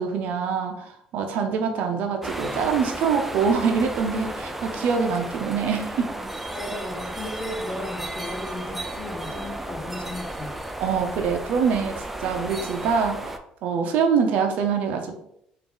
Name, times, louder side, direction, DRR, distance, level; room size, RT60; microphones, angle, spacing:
voice 1, 0.0-6.2 10.8-15.2, right 6 dB, 70° right, 5 dB, 0.7 m, -25 dB
sound 1, 2.2-13.4, right 1 dB, 5° right, 0.4 m, -33 dB
voice 2, 6.5-10.6, left 1 dB, 40° left, 3 dB, 0.8 m, -35 dB
3.8 x 2.7 x 3.9 m, 0.75 s
cardioid pair, 125°, 3 cm